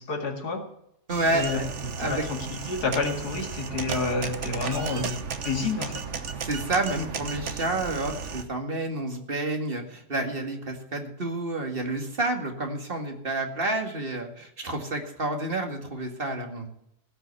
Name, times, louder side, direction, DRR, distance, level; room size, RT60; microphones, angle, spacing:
voice 1, 0.1-0.6 1.3-5.2 5.4-6.1, left 3 dB, 70° left, 4 dB, 2.7 m, -29 dB
voice 2, 1.1-1.7 2.0-2.2 6.4-16.7, right 2 dB, 35° right, 4 dB, 2.2 m, -29 dB
sound 1, 1.1-8.4, right 6 dB, 50° right, 1.3 m, -34 dB
17.0 x 6.2 x 8.3 m, 0.76 s
omnidirectional pair, 1.8 m